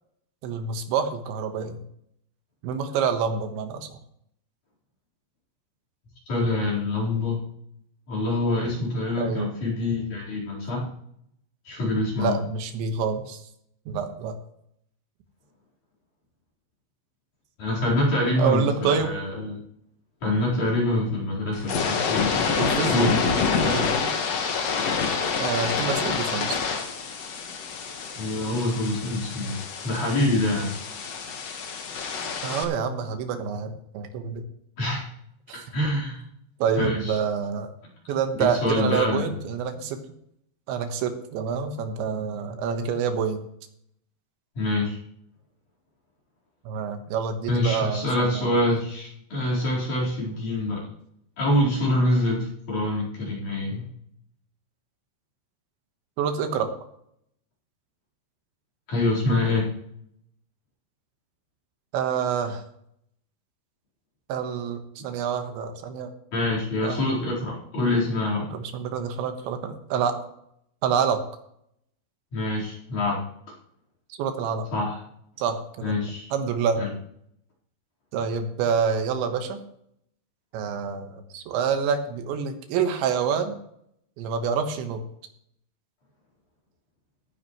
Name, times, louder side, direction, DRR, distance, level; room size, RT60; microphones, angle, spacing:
voice 1, 0.4-1.8 2.6-4.0 9.2-9.5 12.2-13.4 13.9-14.4 18.4-19.1 22.6-23.2 23.6-24.1 25.4-26.6 32.4-34.4 35.5-35.7 36.6-37.7 38.1-40.0 40.7-43.5 46.7-48.5 56.2-56.7 61.9-62.6 64.3-66.1 66.8-67.1 68.5-70.2 70.8-71.2 74.1-74.7 75.4-76.0 76.3-76.8 78.1-79.6 80.5-83.6 84.2-85.0, right 6 dB, 90° right, 6 dB, 3.6 m, -27 dB
voice 2, 6.3-7.4 8.1-10.9 11.7-12.4 17.6-19.6 20.2-22.5 22.9-23.3 28.2-29.6 29.8-30.7 34.8-35.0 35.7-36.2 36.8-37.2 38.5-39.3 44.6-45.0 47.5-50.8 51.4-53.9 58.9-59.6 66.3-68.4 72.3-73.2 74.7-75.0 75.8-76.3 76.8-76.9, left 1 dB, 45° left, -4 dB, 5.4 m, -25 dB
sound 1, 21.5-32.6, left 5 dB, 65° left, 1.7 m, -27 dB
17.5 x 10.0 x 3.1 m, 0.72 s
omnidirectional pair, 5.1 m